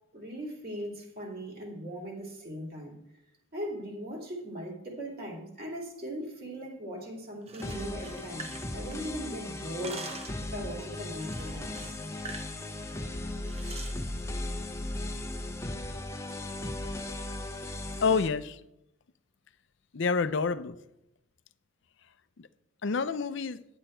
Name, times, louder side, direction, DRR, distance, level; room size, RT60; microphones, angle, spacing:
voice 1, 0.1-3.0 3.5-10.1 10.4-12.0, equal, 45° right, 2.7 m, -39 dB
sound 1, 7.4-9.3 9.6-10.5 11.2-12.5 12.8-13.0 13.4-14.0, right 4 dB, 30° right, 0.7 m, -45 dB
sound 2, 7.6-18.3, left 1 dB, 15° left, 0.7 m, -37 dB
voice 2, 18.0-18.6 19.9-20.8 22.4-22.5 22.8-23.6, left 5 dB, 55° left, 0.5 m, -28 dB
10.5 x 8.9 x 4.4 m
head